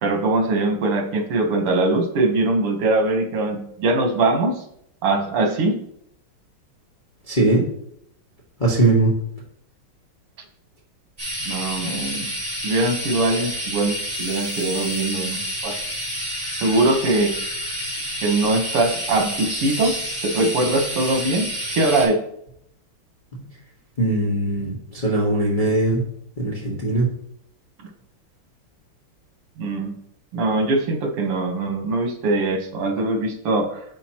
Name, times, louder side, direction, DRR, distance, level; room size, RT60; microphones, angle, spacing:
voice 1, 0.0-4.6 5.0-5.8 11.5-12.3 12.6-15.8 16.6-17.3 18.2-19.9 20.2-22.2 27.8-27.9 29.6-30.0 30.3-33.8, right 2 dB, 85° right, 4 dB, 2.2 m, -22 dB
voice 2, 7.3-7.6 8.6-9.1 24.0-26.0 26.4-27.1, right 2 dB, 25° left, -5 dB, 1.4 m, -20 dB
sound 1, 11.2-22.1, equal, 35° right, 3.8 m, -29 dB
9.1 x 6.7 x 2.9 m, 0.72 s
omnidirectional pair, 2.4 m